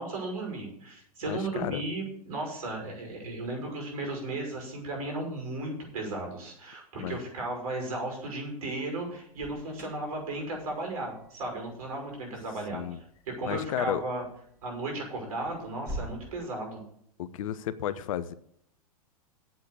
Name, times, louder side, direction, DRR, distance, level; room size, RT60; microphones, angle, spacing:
voice 1, 0.0-12.8 13.4-14.2 14.6-16.8, right 2 dB, 70° right, 1 dB, 6.0 m, -35 dB
voice 2, 1.2-1.8 7.0-7.2 12.7-13.0 13.4-14.0 17.2-18.3, left 11 dB, 60° left, 15 dB, 0.8 m, -33 dB
Alarm, 9.3-16.2, right 1 dB, 15° right, 6.2 m, -47 dB
8.5 x 7.7 x 8.2 m, 0.69 s
hypercardioid pair, 105°, 19 cm